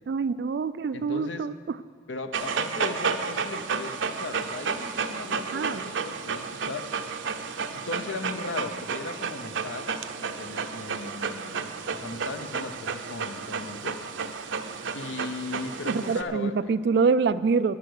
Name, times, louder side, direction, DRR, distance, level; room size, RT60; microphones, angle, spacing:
voice 1, 0.1-1.8 5.5-5.8 15.9-17.8, right 5 dB, 60° right, 14 dB, 0.3 m, -25 dB
voice 2, 0.9-1.5 2.1-7.0 7.7-14.0 14.9-16.7, left 3 dB, 80° left, 9 dB, 0.7 m, -37 dB
Dog, 2.3-16.2, right 5 dB, 85° right, 0.7 m, -32 dB
11.0 x 10.5 x 6.5 m, 2.2 s
head